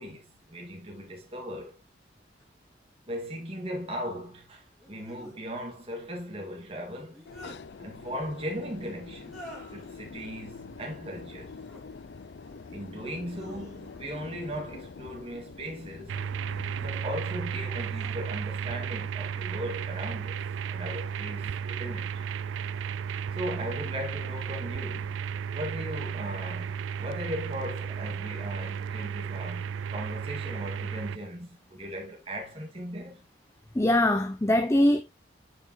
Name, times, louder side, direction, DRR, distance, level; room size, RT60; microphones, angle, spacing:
voice 1, 0.0-1.8 3.1-7.2 7.8-11.6 12.7-16.1 16.8-22.2 23.3-25.2 25.5-33.2, equal, 30° right, 2.3 m, -38 dB
sound 1, 2.4-2.5 4.8-5.4 6.9-7.6 9.2-9.9 11.4-11.9 12.4-12.9 13.3-14.2 15.4-16.0 16.6-18.7 19.7-20.2 20.8-21.4, equal, ahead, 3.1 m, -51 dB
sound 2, 7.2-17.0, left 4 dB, 70° left, 0.5 m, -45 dB
sound 3, 16.1-31.2, right 7 dB, 90° right, 0.3 m, -34 dB
voice 2, 33.7-35.0, left 1 dB, 15° left, 0.5 m, -22 dB
8.9 x 5.2 x 3.1 m
head